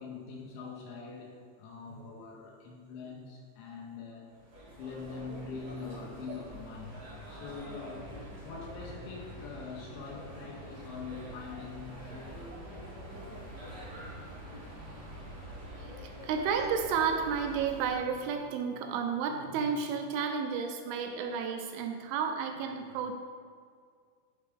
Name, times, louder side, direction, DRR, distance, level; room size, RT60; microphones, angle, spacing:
voice 1, 0.0-4.3 4.8-8.1 8.4-12.6, left 4 dB, 80° left, -1 dB, 2.9 m, -44 dB
sound 1, 4.3-18.0, equal, 65° right, 1.0 m, -46 dB
voice 2, 15.8-23.1, right 6 dB, 80° right, 4 dB, 3.0 m, -32 dB
10.5 x 4.7 x 3.5 m, 2.1 s
omnidirectional pair, 5.7 m